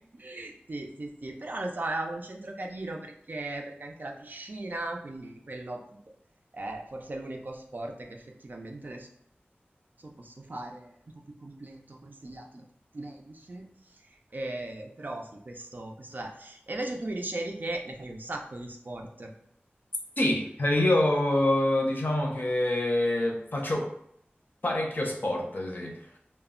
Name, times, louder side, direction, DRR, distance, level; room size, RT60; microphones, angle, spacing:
voice 1, 0.1-6.0 6.5-9.1 10.0-11.0 11.4-12.6 12.9-13.6 13.9-14.0 14.3-19.3, right 2 dB, 50° right, 2 dB, 0.4 m, -37 dB
voice 2, 20.2-23.9 24.6-26.0, left 1 dB, 50° left, 0 dB, 0.6 m, -26 dB
2.1 x 2.0 x 3.6 m, 0.68 s
wide cardioid pair, 70°, 4 cm